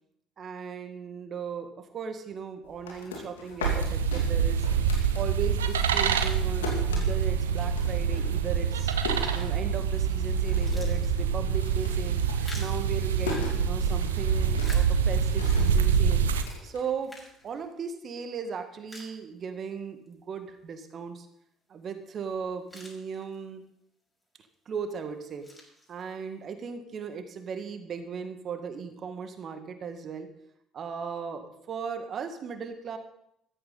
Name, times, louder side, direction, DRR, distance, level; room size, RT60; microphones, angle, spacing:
voice 1, 0.4-4.7 5.1-8.9 9.3-12.2 12.5-16.2 16.6-17.1 17.4-21.3 21.7-23.6 24.7-25.5 25.9-30.3 30.7-33.0, right 6 dB, 45° right, 7 dB, 1.9 m, -37 dB
sound 1, 2.6-5.6 5.9-10.0 10.3-10.9 11.2-17.5, left 4 dB, 75° left, 2.7 m, -39 dB
sound 2, 3.6-16.4, right 6 dB, 80° right, 0.8 m, -26 dB
sound 3, 9.1-9.6 10.1-10.2 10.4-13.6 14.2-15.4 15.9-16.0 16.7-18.1 18.5-18.6 18.9-19.7 20.1-20.2 22.1-22.2 22.5-23.6 24.2-24.5 25.1-26.3, left 1 dB, 15° left, 6.3 m, -49 dB
14.5 x 14.0 x 4.1 m, 0.75 s
figure-of-eight pair, 55°, 0 cm